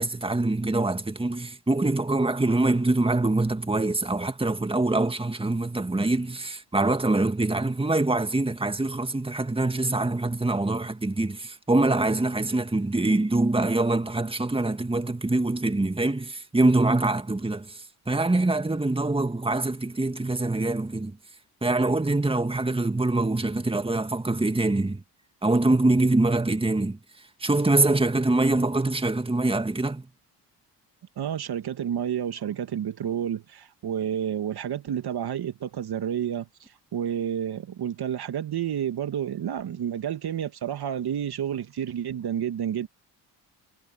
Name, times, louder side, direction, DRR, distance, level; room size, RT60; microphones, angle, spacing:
voice 1, 0.0-21.2 21.6-25.0 25.4-27.0 27.4-30.1, right 2 dB, 10° right, 2.1 m, -24 dB
voice 2, 31.2-42.9, right 9 dB, 55° right, 2.0 m, -30 dB
supercardioid pair, 60°, 45 cm